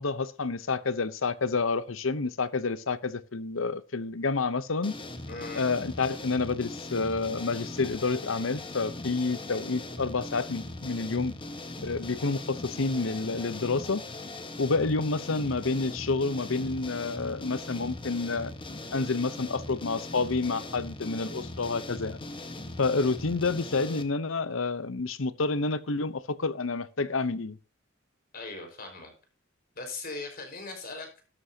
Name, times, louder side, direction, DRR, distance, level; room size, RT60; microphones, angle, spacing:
voice 1, 0.0-5.0 5.6-11.3 11.8-14.0 14.6-18.5 18.9-22.3 22.8-27.6, left 3 dB, 75° left, 0.8 m, -29 dB
sound 1, 4.8-24.0, left 2 dB, 25° left, 1.3 m, -40 dB
voice 2, 5.3-5.6 28.3-29.1 29.7-31.2, left 3 dB, 50° left, 5.0 m, -39 dB
13.0 x 12.5 x 2.8 m
head